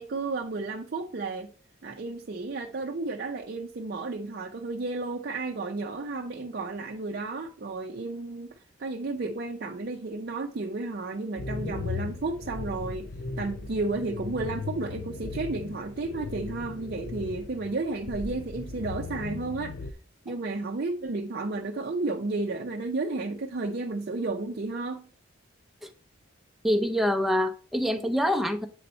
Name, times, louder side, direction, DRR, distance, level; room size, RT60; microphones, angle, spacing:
voice 1, 0.0-1.5 1.8-13.1 13.4-19.9 20.3-25.1, right 3 dB, 50° right, 0.5 m, -32 dB
sound 1, 11.4-19.9, left 3 dB, 50° left, 0.5 m, -37 dB
voice 2, 26.6-28.7, equal, ahead, 0.6 m, -25 dB
7.8 x 4.1 x 4.3 m
head